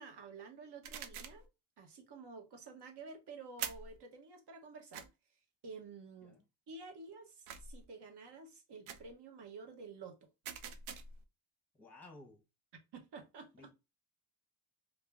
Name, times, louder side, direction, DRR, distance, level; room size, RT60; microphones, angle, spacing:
voice 1, 0.0-1.5 1.8-5.1 5.6-6.4 6.7-10.3 12.9-13.7, right 4 dB, 55° right, 0.9 m, -51 dB
sound 1, 0.8-1.5 3.6-4.0 4.9-5.1 7.5-7.9 8.9-9.1 10.4-11.2, right 7 dB, 90° right, 0.6 m, -44 dB
voice 2, 11.7-12.4 13.5-13.7, left 2 dB, 5° left, 0.9 m, -56 dB
2.6 x 2.0 x 3.3 m
cardioid pair, 110°, 49 cm